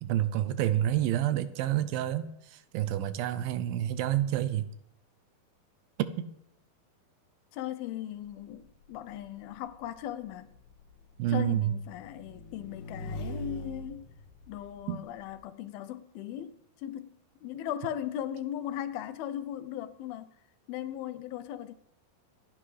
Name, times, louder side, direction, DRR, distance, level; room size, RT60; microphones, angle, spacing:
voice 1, 0.0-4.7 6.2-6.3 11.2-11.7 14.9-15.0, right 12 dB, 80° right, 2.4 m, -28 dB
voice 2, 7.5-10.5 11.3-14.1 14.5-20.3 20.7-21.7, left 11 dB, 85° left, 2.6 m, -38 dB
Motorcycle / Engine, 8.2-15.3, left 1 dB, 65° left, 3.4 m, -44 dB
26.5 x 9.8 x 3.3 m
omnidirectional pair, 4.3 m